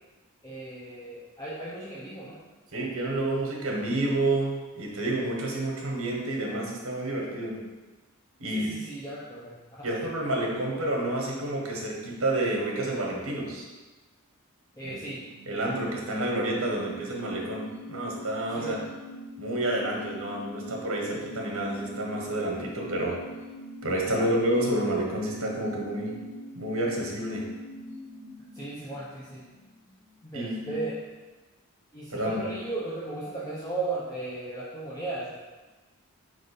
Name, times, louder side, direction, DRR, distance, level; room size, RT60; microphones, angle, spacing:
voice 1, 0.4-2.4 8.5-9.9 14.8-15.2 18.5-18.8 24.1-24.3 28.5-29.4 30.2-31.0 31.9-35.4, right 2 dB, 15° left, -8 dB, 0.7 m, -36 dB
voice 2, 2.7-7.6 8.4-8.7 9.8-13.7 14.8-15.0 15.4-18.8 19.4-23.2 23.8-26.2 26.5-27.5 30.3-30.7 32.1-32.4, right 1 dB, 70° right, -1 dB, 1.4 m, -29 dB
sound 1, 15.1-30.1 30.4-30.5, equal, 30° right, 1.4 m, -43 dB
4.8 x 3.7 x 5.3 m, 1.2 s
head